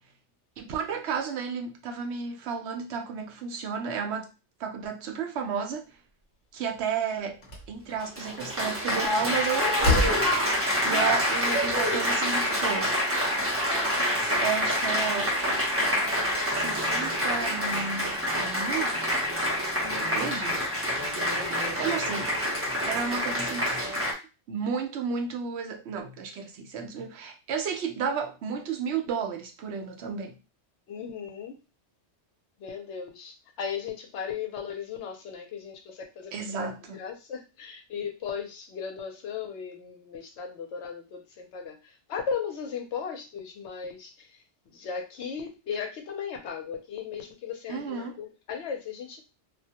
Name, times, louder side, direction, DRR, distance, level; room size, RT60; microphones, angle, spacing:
voice 1, 0.6-4.3 4.6-5.8 6.5-7.4 7.7-10.2 10.8-12.9 14.2-15.3 16.4-18.9 20.1-20.7 21.8-22.3 22.8-23.7 24.5-30.4 36.3-37.0 47.7-48.2, right 6 dB, 70° right, 0.8 m, -32 dB
Slam, 6.7-6.8 7.4-7.7 9.3-9.4 9.8-10.3, left 2 dB, 50° left, 0.9 m, -25 dB
Applause, 7.9-24.1, equal, 20° right, 0.4 m, -27 dB
voice 2, 21.1-21.9 23.0-23.2 30.9-31.6 32.6-49.2, left 6 dB, 75° left, 0.9 m, -37 dB
2.2 x 2.1 x 2.7 m
omnidirectional pair, 1.2 m